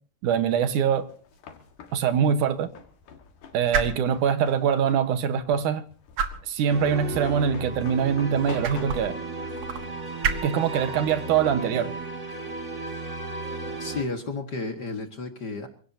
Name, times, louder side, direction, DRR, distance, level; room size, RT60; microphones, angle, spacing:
voice 1, 0.2-1.1 1.9-2.7 3.5-5.8 6.5-9.2 10.4-11.9, right 8 dB, 85° right, 10 dB, 2.8 m, -23 dB
sound 1, 0.7-14.3, right 5 dB, 55° right, 2.3 m, -36 dB
sound 2, 0.9-11.3, left 6 dB, 90° left, 3.3 m, -46 dB
sound 3, 6.7-14.0, right 3 dB, 25° right, 2.1 m, -35 dB
voice 2, 13.8-15.7, left 3 dB, 40° left, 6 dB, 1.9 m, -32 dB
27.5 x 17.0 x 2.8 m, 0.42 s
omnidirectional pair, 3.5 m